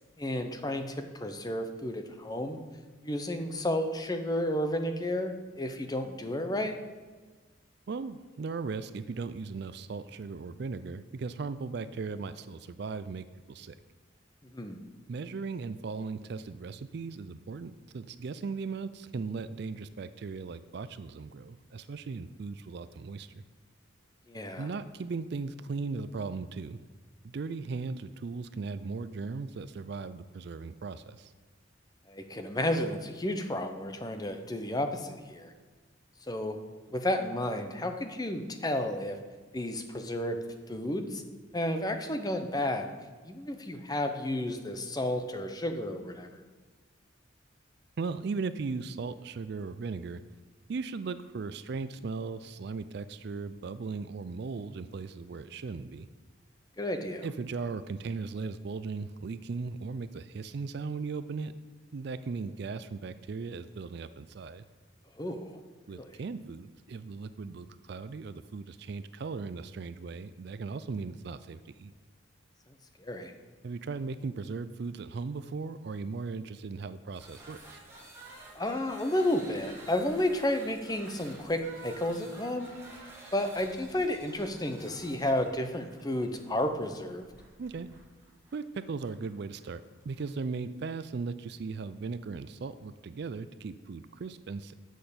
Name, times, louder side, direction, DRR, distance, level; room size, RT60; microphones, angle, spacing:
voice 1, 0.2-2.6 3.0-6.7 14.4-14.8 24.3-24.7 32.1-35.5 36.3-36.6 36.9-39.2 39.5-40.4 40.7-41.2 41.5-42.9 43.2-46.4 56.8-57.2 65.2-65.6 65.9-66.2 73.0-73.3 78.5-82.7 83.3-87.3, left 1 dB, 20° left, 6 dB, 0.7 m, -32 dB
voice 2, 7.9-13.7 15.1-23.4 24.6-26.8 27.3-31.3 48.0-50.2 50.7-56.1 57.2-61.5 61.9-64.6 65.9-71.9 73.6-77.8 87.6-87.9 88.5-94.7, right 4 dB, 55° right, 13 dB, 0.4 m, -37 dB
sound 1, 77.1-90.3, right 2 dB, 10° right, 1.6 m, -51 dB
7.7 x 6.4 x 6.8 m, 1.4 s
head